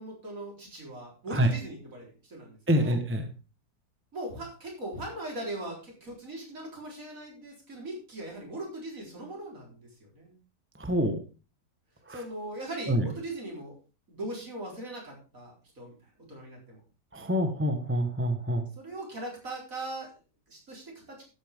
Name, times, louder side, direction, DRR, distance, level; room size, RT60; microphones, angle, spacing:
voice 1, 0.0-3.0 4.1-9.9 10.1-10.4 12.1-13.7 14.1-15.9 16.3-16.8 18.8-20.1 20.5-21.2, right 1 dB, 50° right, -2 dB, 4.6 m, -40 dB
voice 2, 2.7-3.3 10.8-11.2 12.1-12.2 12.9-13.1 17.1-18.7, equal, 10° right, 6 dB, 1.0 m, -26 dB
13.0 x 8.6 x 3.6 m, 0.34 s
omnidirectional pair, 1.8 m